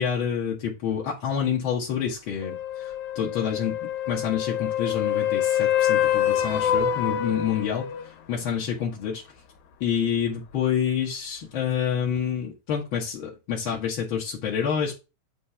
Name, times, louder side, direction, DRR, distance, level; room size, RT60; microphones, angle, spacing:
voice 1, 0.0-7.8 8.3-9.2 9.8-15.0, left 8 dB, 50° left, 1.8 m, -28 dB
sound 1, 2.4-8.1 12.2-12.3, left 10 dB, 85° left, 2.5 m, -26 dB
8.7 x 3.3 x 5.6 m
omnidirectional pair, 3.3 m